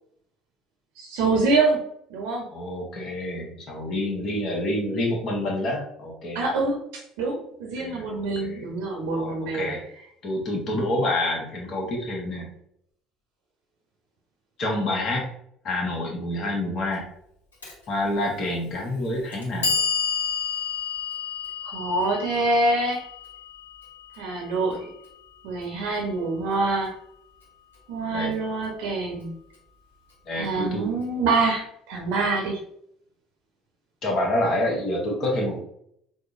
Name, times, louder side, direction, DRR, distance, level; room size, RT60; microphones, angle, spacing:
voice 1, 1.0-2.5 6.3-9.7 21.6-23.0 24.2-24.9 25.4-26.9 27.9-29.3 30.3-32.6, right 3 dB, 65° right, -1 dB, 0.7 m, -25 dB
voice 2, 2.5-6.5 7.8-8.6 9.1-9.8 10.2-12.5 14.6-15.3 15.6-17.0 17.9-19.7 28.1-28.3 30.3-30.9 34.0-35.6, left 1 dB, 45° left, -1 dB, 1.0 m, -27 dB
Clock, 17.6-17.7 18.7-18.8 19.3-25.4, left 6 dB, 80° left, 0.8 m, -31 dB
4.8 x 2.1 x 2.5 m, 0.71 s
figure-of-eight pair, 60°, 0 cm